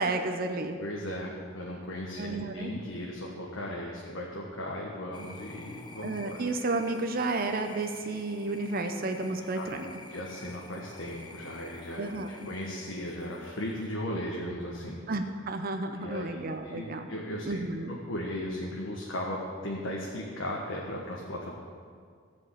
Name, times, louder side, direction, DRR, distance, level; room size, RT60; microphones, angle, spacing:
voice 1, 0.0-0.8 2.2-2.7 6.0-9.9 12.0-12.5 15.1-17.1 17.5-17.9, right 2 dB, 50° right, 6 dB, 0.7 m, -32 dB
voice 2, 0.8-6.4 9.5-15.0 16.0-17.6 17.9-21.5, left 1 dB, 75° left, -2 dB, 1.4 m, -37 dB
sound 1, 5.1-14.0, left 3 dB, 20° left, 0.8 m, -49 dB
15.0 x 5.2 x 8.3 m, 2.1 s
head